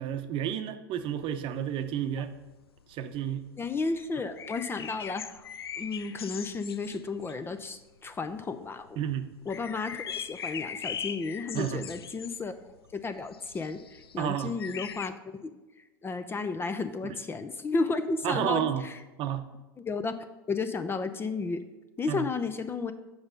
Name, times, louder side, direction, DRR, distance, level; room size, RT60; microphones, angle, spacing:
voice 1, 0.0-2.3 2.9-3.5 9.0-9.3 11.5-11.8 14.2-14.6 17.0-17.1 18.2-18.9 19.2-19.5 22.1-22.2, right 10 dB, 45° right, 9 dB, 0.7 m, -31 dB
sound 1, 1.1-8.4 8.6-8.9 9.2-15.1, left 7 dB, 85° left, 0.4 m, -41 dB
voice 2, 3.6-5.5 5.8-9.0 9.5-12.5 12.9-15.5 16.0-18.9 19.9-20.1 20.5-21.6 22.0-22.9, left 4 dB, 20° left, 11 dB, 0.5 m, -33 dB
7.9 x 5.4 x 5.1 m, 1.1 s
hypercardioid pair, 90°, 12 cm